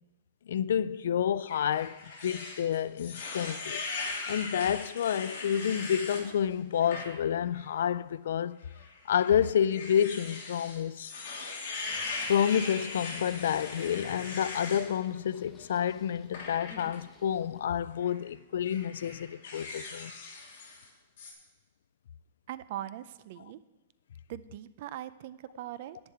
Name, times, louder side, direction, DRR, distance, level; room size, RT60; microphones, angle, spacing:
voice 1, 0.5-3.8 4.3-8.5 9.1-11.1 12.3-20.1, left 9 dB, 70° left, 0.4 m, -29 dB
sound 1, 1.5-6.2 6.7-7.1 7.5-7.7 8.7-14.8 16.3-17.0 17.9-18.2 18.6-20.9 21.2-21.3, left 4 dB, 50° left, 2.7 m, -40 dB
Singing, 11.8-17.6, left 4 dB, 15° left, 1.0 m, -54 dB
voice 2, 22.5-23.6 24.3-26.0, right 13 dB, 45° right, 0.5 m, -41 dB
10.5 x 9.8 x 4.4 m
hypercardioid pair, 170°, 0 cm